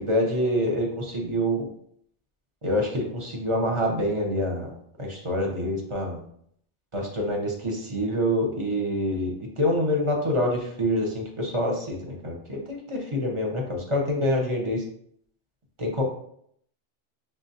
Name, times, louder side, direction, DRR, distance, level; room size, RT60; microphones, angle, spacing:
voice 1, 0.0-1.7 2.6-4.7 5.0-6.2 6.9-14.8 15.8-16.0, equal, 30° right, 0 dB, 0.6 m, -26 dB
5.9 x 2.0 x 2.7 m, 0.68 s
omnidirectional pair, 1.3 m